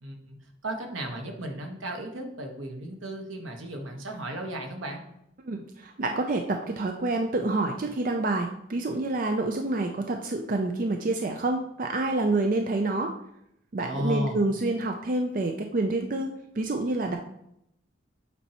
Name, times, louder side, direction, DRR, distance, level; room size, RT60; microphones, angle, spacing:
voice 1, 0.0-0.4 0.6-5.0 13.8-14.4, right 1 dB, 80° right, 3 dB, 1.2 m, -34 dB
voice 2, 5.4-13.1 13.7-17.2, right 2 dB, 45° right, 4 dB, 0.4 m, -28 dB
8.1 x 4.3 x 2.9 m, 0.77 s
head